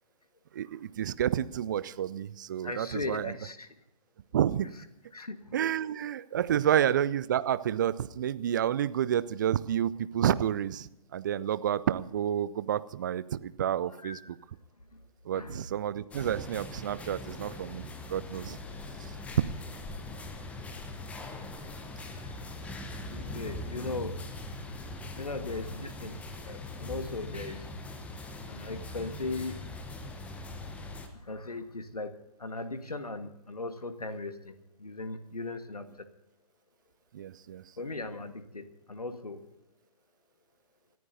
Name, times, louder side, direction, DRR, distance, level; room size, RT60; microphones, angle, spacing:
voice 1, 0.5-3.3 4.3-4.7 5.5-14.4 15.3-18.6 37.1-37.6, right 10 dB, 30° right, 17 dB, 0.5 m, -30 dB
voice 2, 2.6-3.7 5.1-5.5 14.0-14.3 15.3-15.6 22.1-22.3 23.1-24.2 25.2-26.2 26.5-27.7 28.5-29.7 31.1-36.1 37.8-39.4, left 3 dB, 75° left, 9 dB, 1.7 m, -38 dB
sound 1, 16.1-31.1, left 2 dB, 5° left, 1.0 m, -41 dB
29.5 x 14.0 x 2.7 m, 0.86 s
figure-of-eight pair, 135°, 20 cm